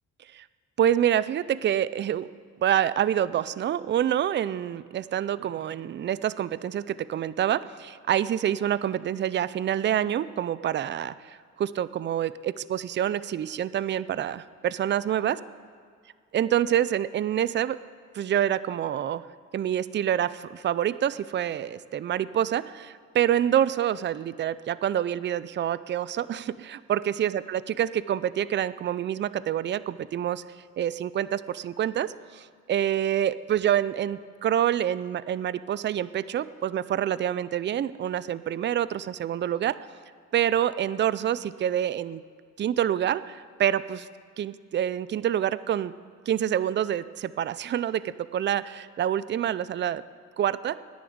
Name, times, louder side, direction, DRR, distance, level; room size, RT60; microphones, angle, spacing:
voice 1, 0.8-2.3 2.6-15.4 16.3-17.8 18.1-19.2 19.5-30.4 30.8-39.8 40.3-42.2 42.6-44.1 44.4-45.9 46.3-50.0 50.4-50.8, right 10 dB, 40° right, 17 dB, 0.4 m, -27 dB
10.5 x 10.0 x 7.8 m, 2.1 s
cardioid pair, 90°, 30 cm